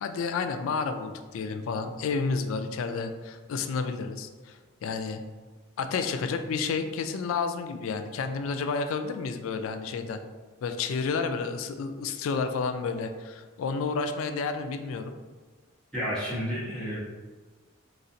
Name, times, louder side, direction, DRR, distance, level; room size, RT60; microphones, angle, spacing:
voice 1, 0.0-5.2 5.8-10.2 10.6-15.1, left 4 dB, 75° left, 7 dB, 0.3 m, -31 dB
voice 2, 15.9-17.0, equal, 5° left, -11 dB, 1.1 m, -31 dB
4.0 x 2.4 x 2.7 m, 1.3 s
head